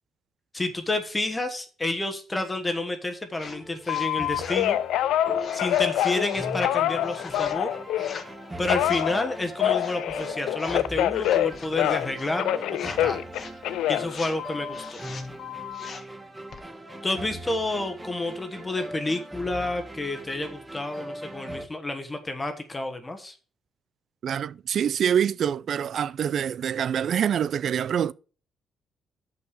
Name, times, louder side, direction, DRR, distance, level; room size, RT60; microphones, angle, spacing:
voice 1, 0.5-4.8 5.5-7.7 8.6-13.2 13.9-15.0 15.9-16.1 17.0-23.3, left 2 dB, 20° left, 1.2 m, -30 dB
sound 1, 3.4-3.6 3.8-4.7 5.4-6.5 7.0-7.6 7.9-8.4 8.8-9.1 9.7-10.9 11.2-12.3 12.7-13.0 13.3-13.6 14.0-14.4 14.7-15.3 15.7-16.1 16.5-16.7, left 5 dB, 50° left, 1.4 m, -42 dB
sound 2, 3.4-21.7, right 1 dB, 15° right, 1.3 m, -40 dB
Telephone, 3.9-8.2 8.7-12.1 12.4-14.9 15.4-15.9, left 12 dB, 90° left, 0.4 m, -26 dB
voice 2, 24.2-28.1, right 8 dB, 60° right, 0.3 m, -25 dB
6.6 x 5.7 x 6.5 m
cardioid pair, 90°, 0 cm